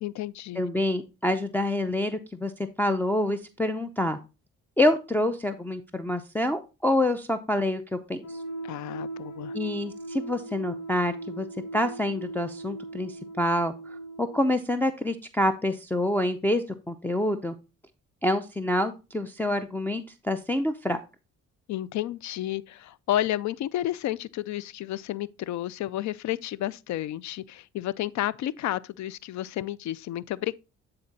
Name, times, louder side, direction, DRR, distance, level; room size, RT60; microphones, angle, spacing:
voice 1, 0.0-0.7 8.6-9.6 21.7-30.6, left 13 dB, 70° left, 0.5 m, -31 dB
voice 2, 0.6-2.5 2.8-4.2 4.8-8.3 9.5-11.5 11.7-13.7 14.2-17.5 18.2-21.0, left 1 dB, 5° left, 0.6 m, -27 dB
sound 1, 8.2-14.5, right 2 dB, 85° left, 2.2 m, -39 dB
9.5 x 3.9 x 4.0 m
cardioid pair, 90°, 30 cm